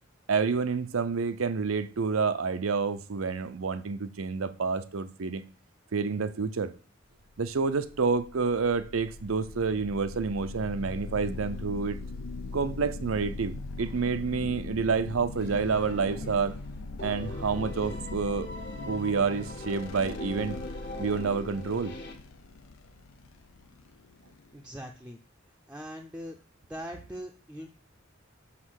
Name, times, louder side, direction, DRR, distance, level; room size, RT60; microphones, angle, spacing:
voice 1, 0.3-5.4 5.9-6.7 7.4-12.0 12.5-16.6 17.0-18.5 18.9-20.6 21.0-22.0, right 5 dB, 90° right, 0.6 m, -28 dB
sound 1, 7.5-24.8, left 3 dB, 85° left, 0.5 m, -40 dB
sound 2, 15.4-16.7 17.0-22.1, left 1 dB, 55° left, 1.5 m, -41 dB
voice 2, 24.5-25.2 25.7-26.4 26.7-27.7, equal, 5° right, 0.5 m, -41 dB
5.9 x 5.2 x 6.4 m
head